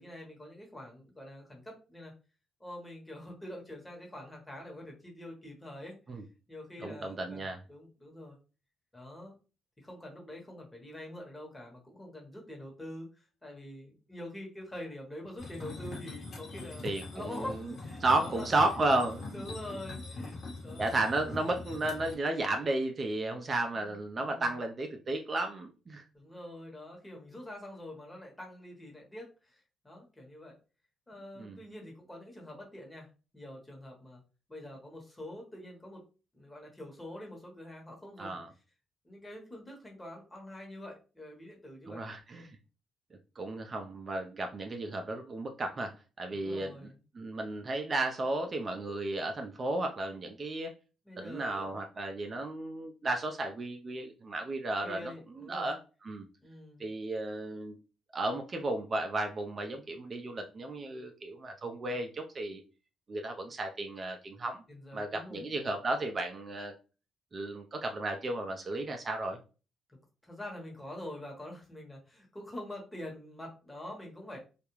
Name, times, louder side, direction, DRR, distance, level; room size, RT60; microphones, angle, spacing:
voice 1, 0.0-2.1 2.6-5.9 6.5-8.4 8.9-9.4 9.8-16.9 17.1-18.5 19.2-20.9 23.7-24.5 26.1-30.6 31.1-34.2 34.5-36.0 36.3-38.4 39.0-42.0 46.3-47.0 51.0-51.7 54.8-55.7 56.4-56.8 64.7-65.4 69.9-70.0 70.2-74.4, left 1 dB, 15° left, -1 dB, 1.1 m, -45 dB
voice 2, 6.8-7.6 16.8-17.7 18.0-19.3 20.8-26.0 31.4-31.6 38.2-38.5 41.9-42.6 43.4-46.9 47.2-50.7 51.2-56.3 56.8-57.8 58.1-62.6 63.1-64.6 64.9-66.7 67.3-69.4, right 2 dB, 35° right, 4 dB, 0.4 m, -33 dB
sound 1, 15.4-22.1, left 3 dB, 50° left, 1.0 m, -43 dB
2.3 x 2.1 x 3.0 m, 0.33 s
cardioid pair, 90°, 0 cm